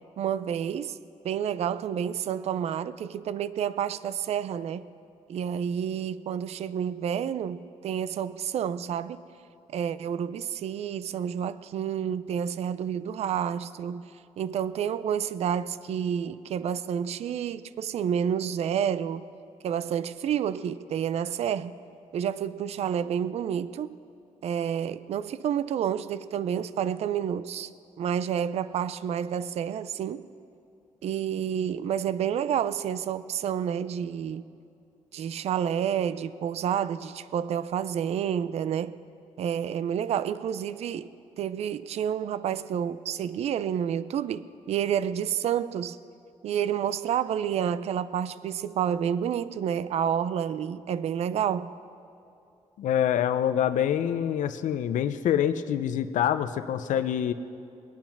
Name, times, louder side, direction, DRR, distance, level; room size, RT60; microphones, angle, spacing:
voice 1, 0.2-1.0 1.2-4.9 5.3-9.2 9.7-14.1 14.4-19.2 19.6-21.8 22.1-24.0 24.4-27.7 28.0-30.2 31.0-34.5 35.1-39.0 39.4-41.1 41.4-46.0 46.4-51.7, right 9 dB, 60° right, 0.4 m, -29 dB
voice 2, 52.8-57.3, left 10 dB, 90° left, 0.6 m, -26 dB
22.0 x 9.0 x 5.9 m
wide cardioid pair, 160°, 13 cm